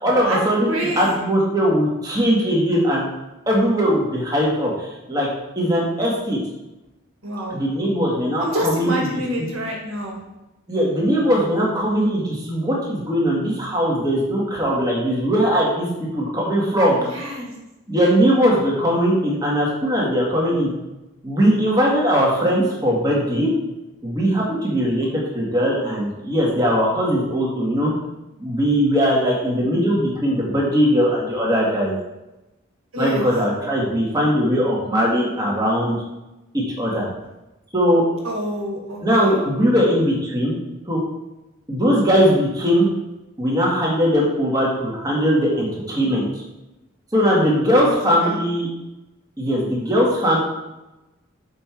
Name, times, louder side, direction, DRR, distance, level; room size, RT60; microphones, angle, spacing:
voice 1, 0.0-3.0 3.5-5.3 5.6-6.4 7.5-8.9 9.4-9.5 10.7-17.0 17.9-20.7 21.2-23.5 24.0-25.1 25.3-27.9 28.4-32.0 33.0-36.0 36.5-37.0 37.7-38.0 39.0-40.5 40.9-41.0 41.7-42.9 43.4-46.2 47.1-48.7 49.4-50.4, equal, 20° right, -4 dB, 1.9 m, -20 dB
voice 2, 0.7-1.2 7.2-7.6 8.4-10.2 17.1-17.5 32.9-33.2 38.2-39.4 47.9-48.4, equal, 85° right, -1 dB, 2.0 m, -27 dB
6.7 x 5.6 x 4.6 m, 0.99 s
head